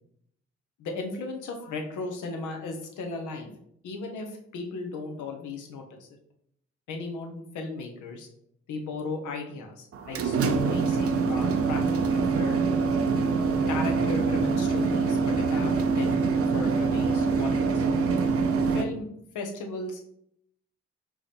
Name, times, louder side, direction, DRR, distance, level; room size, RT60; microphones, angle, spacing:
voice 1, 0.8-3.6 3.8-6.1 6.9-8.3 8.7-12.6 13.7-16.3 16.5-17.7 18.7-19.1 19.3-20.0, left 3 dB, 80° left, 3 dB, 0.8 m, -36 dB
sound 1, 9.9-18.8, right 4 dB, 50° right, 0.6 m, -25 dB
4.7 x 2.8 x 3.4 m, 0.72 s
supercardioid pair, 45°, 30 cm